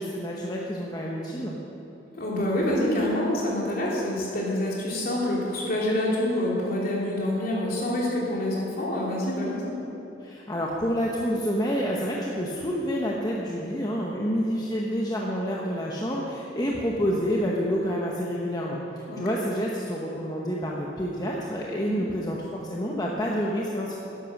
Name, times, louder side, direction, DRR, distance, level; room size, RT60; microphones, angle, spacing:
voice 1, 0.0-1.6 10.2-23.9, equal, 20° left, -3 dB, 1.0 m, -28 dB
voice 2, 2.2-9.7 19.1-19.2 21.8-21.9, left 1 dB, 50° left, -4 dB, 3.1 m, -27 dB
10.5 x 10.5 x 6.6 m, 3.0 s
head